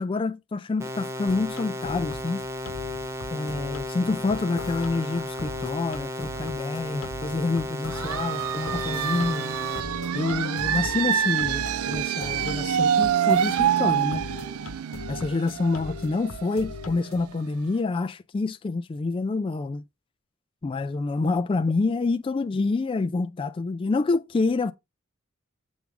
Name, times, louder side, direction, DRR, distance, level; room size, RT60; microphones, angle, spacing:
voice 1, 0.0-2.4 3.3-9.5 10.1-14.3 15.1-19.8 20.6-24.7, left 3 dB, 25° left, 0.3 m, -27 dB
sound 1, 0.8-9.8, equal, 15° right, 0.7 m, -34 dB
sound 2, 1.3-17.3, left 4 dB, 80° left, 0.9 m, -40 dB
sound 3, 7.9-17.4, right 9 dB, 75° right, 0.4 m, -26 dB
7.3 x 3.5 x 5.9 m
head